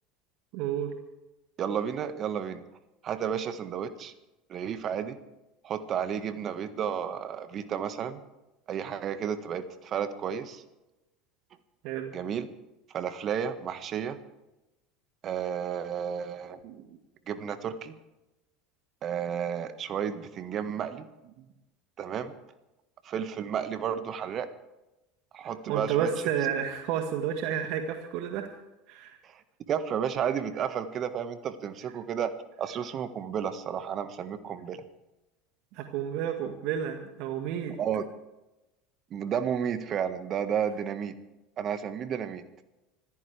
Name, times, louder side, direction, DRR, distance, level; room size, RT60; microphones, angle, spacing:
voice 1, 0.5-0.9 11.8-12.1 16.6-16.9 25.7-28.5 28.9-29.2 35.7-37.8, right 9 dB, 60° right, 5 dB, 1.7 m, -31 dB
voice 2, 1.6-2.6 3.0-4.1 4.5-5.2 5.6-8.2 8.7-10.6 12.1-12.5 12.9-14.2 15.2-16.6 17.3-17.9 19.0-21.1 22.0-22.3 23.0-24.5 25.3-26.1 29.2-29.4 29.7-32.3 32.6-34.8 37.8-38.1 39.1-41.1 41.6-42.4, right 8 dB, 45° right, 10 dB, 1.6 m, -32 dB
25.5 x 14.0 x 3.5 m, 0.98 s
hypercardioid pair, 75°, 0 cm